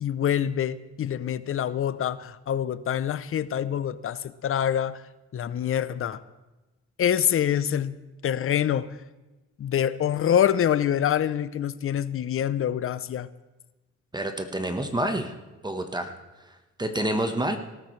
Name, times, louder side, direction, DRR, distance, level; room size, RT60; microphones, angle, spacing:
voice 1, 0.0-5.0 5.3-6.2 7.0-8.0 8.2-9.0 9.6-13.3, left 9 dB, 45° left, 16 dB, 0.6 m, -25 dB
voice 2, 14.1-15.3 15.6-16.1 16.4-16.5 16.8-17.6, right 1 dB, 15° right, 6 dB, 1.2 m, -28 dB
18.5 x 13.5 x 3.2 m, 1.1 s
cardioid pair, 90°, 30 cm